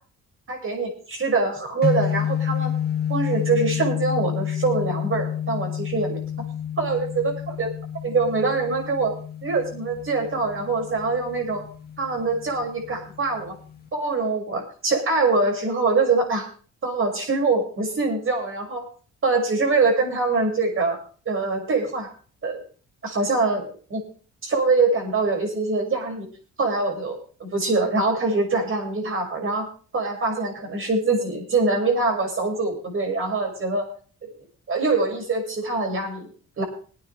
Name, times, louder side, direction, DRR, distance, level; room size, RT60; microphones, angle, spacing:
voice 1, 0.5-2.7 3.1-6.2 6.8-7.7 8.0-9.1 9.4-11.6 12.0-13.5 13.9-16.4 16.8-18.8 19.2-21.0 21.3-22.1 22.4-22.6 23.0-24.0 24.4-26.3 26.6-29.7 29.9-33.9 34.7-36.3 36.6-36.7, right 3 dB, 45° right, 2 dB, 6.1 m, -24 dB
sound 1, 1.8-13.9, left 9 dB, 30° left, 2.3 m, -30 dB
22.0 x 9.3 x 3.4 m, 0.41 s
cardioid pair, 90°, 30 cm